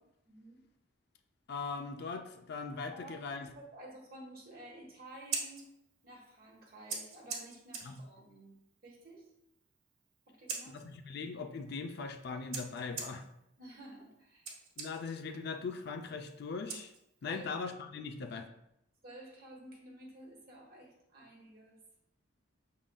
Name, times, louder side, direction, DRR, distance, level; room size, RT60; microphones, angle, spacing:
voice 1, 0.2-0.6 2.9-5.7 6.0-8.5 8.8-9.3 10.3-10.8 13.6-14.5 17.3-17.5 19.0-21.8, right 1 dB, 45° right, -2 dB, 1.2 m, -52 dB
voice 2, 1.5-3.5 7.8-8.0 10.7-13.2 14.8-16.9 17.2-18.5, left 4 dB, 50° left, 6 dB, 0.4 m, -40 dB
Scissors, 5.1-17.4, right 5 dB, 75° right, 1.1 m, -46 dB
6.1 x 3.7 x 2.2 m, 0.81 s
head